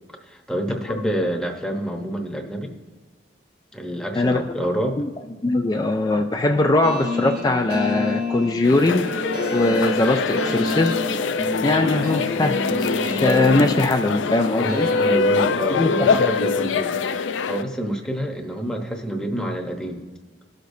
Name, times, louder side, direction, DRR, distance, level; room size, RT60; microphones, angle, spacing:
voice 1, 0.2-2.7 3.7-5.0 11.9-12.1 14.6-17.0 17.4-20.0, right 1 dB, 5° left, 2 dB, 0.9 m, -27 dB
voice 2, 5.4-9.1 9.5-10.9 11.6-12.6 13.0-14.9 15.8-16.3, left 2 dB, 20° left, 5 dB, 0.3 m, -21 dB
sound 1, 6.8-15.2, left 1 dB, 50° right, 0.7 m, -30 dB
sound 2, 8.6-17.6, left 4 dB, 90° left, 0.4 m, -23 dB
19.0 x 6.5 x 2.7 m, 1.4 s
head